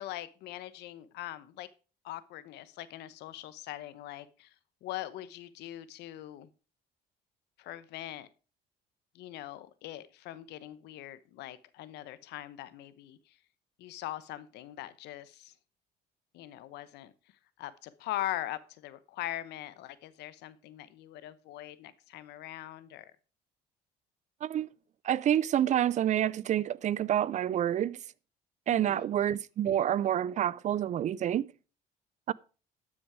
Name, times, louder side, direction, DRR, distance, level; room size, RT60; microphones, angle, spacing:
voice 1, 0.0-1.7 2.0-4.5 4.8-6.5 7.6-8.3 9.1-13.3 13.8-15.5 16.3-17.1 17.6-23.1 28.7-29.1, left 14 dB, 80° left, 0.9 m, -41 dB
voice 2, 25.0-28.0 28.7-31.5 32.3-32.4, right 11 dB, 45° right, 0.4 m, -28 dB
12.5 x 6.1 x 4.9 m
cardioid pair, 110°, 17 cm